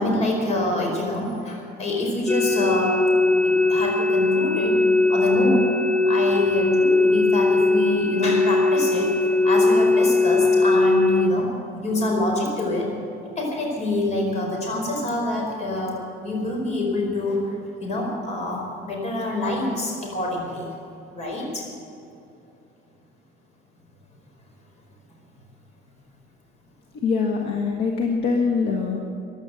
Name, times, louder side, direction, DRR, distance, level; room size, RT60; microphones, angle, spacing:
voice 1, 0.0-4.7 5.1-5.7 6.0-9.2 9.4-11.5 11.7-12.9 13.2-15.9 16.2-20.7 21.1-21.6, left 2 dB, 35° left, 0 dB, 4.7 m, -26 dB
sound 1, 2.3-11.3, left 2 dB, 5° left, 0.4 m, -19 dB
voice 2, 26.9-29.0, left 5 dB, 60° left, 1 dB, 1.5 m, -23 dB
15.0 x 11.5 x 7.8 m, 2.7 s
cardioid pair, 150°, 19 cm